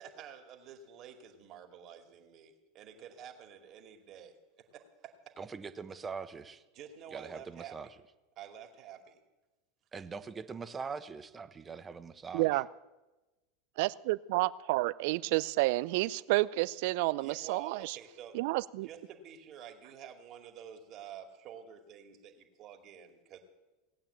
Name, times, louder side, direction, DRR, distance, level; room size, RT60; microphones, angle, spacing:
voice 1, 0.0-5.1 6.7-7.9 8.4-9.2 17.2-18.4 18.8-23.4, right 8 dB, 45° right, 2.4 m, -50 dB
voice 2, 5.4-6.6 7.1-7.9 9.9-12.6, right 5 dB, 25° right, 1.1 m, -42 dB
voice 3, 12.3-12.6 13.8-18.0 18.3-18.9, right 20 dB, 60° right, 0.5 m, -30 dB
18.0 x 8.9 x 8.4 m
hypercardioid pair, 85°, 0 cm